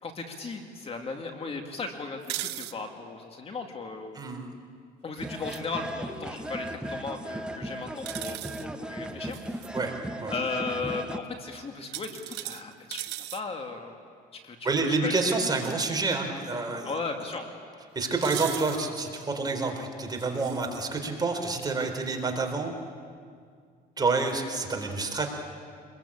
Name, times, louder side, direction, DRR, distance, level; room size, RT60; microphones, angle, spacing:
voice 1, 0.0-4.2 5.0-9.6 10.3-14.0 14.3-15.3 16.8-17.5, left 4 dB, 35° left, 3 dB, 2.4 m, -36 dB
sound 1, 2.2-2.7 5.3-5.7 8.1-8.7 9.3-9.7 11.9-13.4 15.5-15.7 16.1-16.2 18.2-18.8 20.2-20.9, right 16 dB, 90° right, 0.9 m, -38 dB
voice 2, 4.1-4.5 9.7-9.9 10.2-10.3 14.6-16.9 18.0-22.7 24.0-25.3, right 3 dB, 25° right, 3 dB, 4.1 m, -28 dB
sound 2, 5.2-11.2, right 1 dB, 5° right, 1.2 m, -37 dB
26.5 x 21.5 x 8.7 m, 2.1 s
cardioid pair, 110°, 17 cm